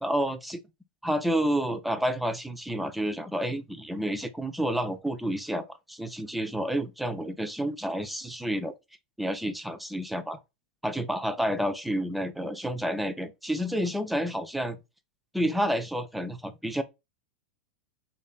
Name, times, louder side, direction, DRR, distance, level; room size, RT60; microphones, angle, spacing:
voice 1, 0.0-0.6 1.0-8.7 9.2-10.4 10.8-14.8 15.3-16.8, equal, ahead, 0.3 m, -29 dB
2.5 x 2.2 x 2.3 m
hypercardioid pair, 120°, 5 cm